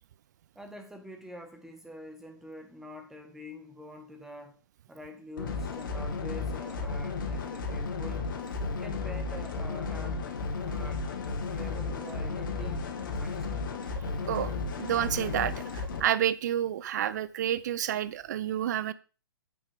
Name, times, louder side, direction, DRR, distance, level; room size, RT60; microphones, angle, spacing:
voice 1, 0.5-4.6 4.9-8.2 8.6-10.2 10.6-11.1 11.5-13.7, equal, 5° right, 1.5 m, -46 dB
sound 1, 5.4-16.0, left 4 dB, 55° left, 2.1 m, -34 dB
voice 2, 14.0-14.5 14.8-18.9, right 11 dB, 45° right, 0.7 m, -30 dB
8.7 x 7.8 x 3.6 m
figure-of-eight pair, 120°, 13 cm